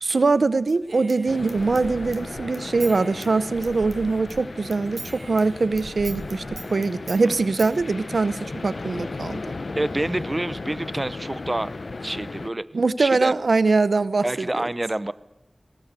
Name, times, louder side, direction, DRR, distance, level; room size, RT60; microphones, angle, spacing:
voice 1, 0.0-5.0 5.3-6.4 6.7-9.4 12.7-14.5, right 3 dB, 80° right, 16 dB, 0.7 m, -22 dB
Human voice / Scissors, 0.7-4.4 4.7-7.7, right 2 dB, 60° right, 2.3 m, -41 dB
sound 1, 1.3-12.5, left 3 dB, 70° left, 0.9 m, -36 dB
voice 2, 9.8-11.7 12.0-12.6 13.0-13.3 14.2-15.1, right 1 dB, 30° right, 16 dB, 0.7 m, -27 dB
21.5 x 18.5 x 8.1 m, 0.94 s
wide cardioid pair, 65°, 0 cm